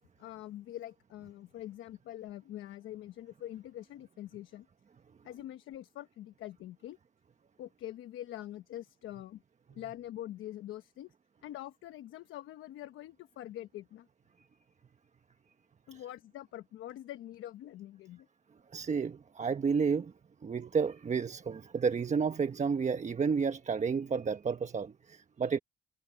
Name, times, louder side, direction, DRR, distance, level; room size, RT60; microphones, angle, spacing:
voice 1, 0.2-4.7 5.2-7.0 7.6-9.4 9.7-11.1 11.4-14.1 15.9-18.3, left 13 dB, 85° left, 1.1 m, -44 dB
voice 2, 18.7-20.1 20.4-25.6, right 5 dB, 35° right, 1.2 m, -31 dB
cardioid pair, 90°, 20 cm